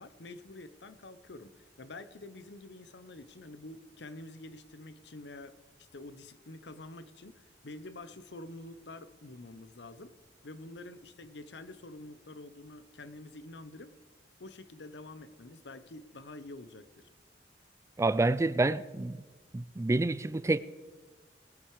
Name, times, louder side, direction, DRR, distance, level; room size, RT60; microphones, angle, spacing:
voice 1, 0.0-10.2 10.4-13.9 14.4-17.1, left 2 dB, 75° left, 0.8 m, -47 dB
voice 2, 18.0-19.2 19.5-20.6, right 2 dB, 15° right, 0.3 m, -28 dB
19.5 x 9.0 x 4.8 m
head